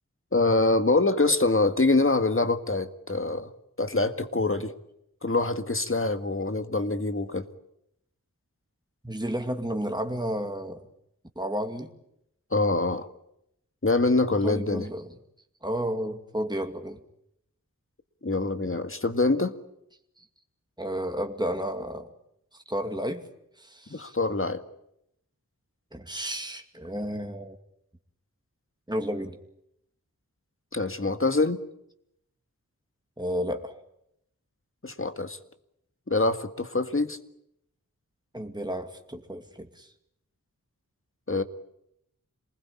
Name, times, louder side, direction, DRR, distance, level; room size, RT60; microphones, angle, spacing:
voice 1, 0.3-3.5 3.8-4.7 5.2-7.5 12.5-13.1 13.8-14.9 18.2-19.5 23.9-24.6 30.7-31.6 34.8-35.4 36.1-37.2 41.3-41.4, left 2 dB, 40° left, 9 dB, 1.9 m, -25 dB
voice 2, 9.0-10.8 11.4-11.9 14.4-15.1 15.6-17.0 20.2-20.3 20.8-22.1 22.7-23.2 23.6-24.1 25.9-27.6 28.9-29.4 33.2-33.8 38.3-39.9, equal, 15° right, 5 dB, 2.4 m, -32 dB
27.0 x 20.0 x 8.7 m, 0.77 s
wide cardioid pair, 45°, 32 cm